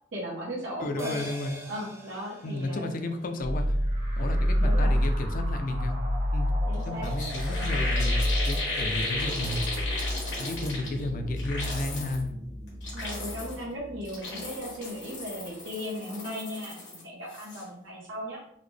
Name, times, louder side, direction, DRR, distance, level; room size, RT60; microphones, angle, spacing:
voice 1, 0.1-1.1 1.7-2.9 4.6-4.9 6.7-7.1 12.9-18.4, equal, 85° right, -5 dB, 0.9 m, -37 dB
voice 2, 0.8-1.6 2.4-3.8 4.2-6.0 6.3-6.5 6.8-8.2 8.5-9.6 10.4-12.4, left 2 dB, 50° left, 6 dB, 0.4 m, -33 dB
sound 1, 1.0-5.7 6.0-6.1, left 1 dB, 15° right, 0.4 m, -45 dB
sound 2, 3.4-14.8, equal, 50° right, 1.2 m, -29 dB
sound 3, 6.7-6.8 7.0-11.0 11.4-12.2 12.7-13.6 14.0-17.0 17.3-17.6, left 2 dB, 90° left, 1.4 m, -35 dB
3.8 x 2.1 x 3.2 m, 0.71 s
head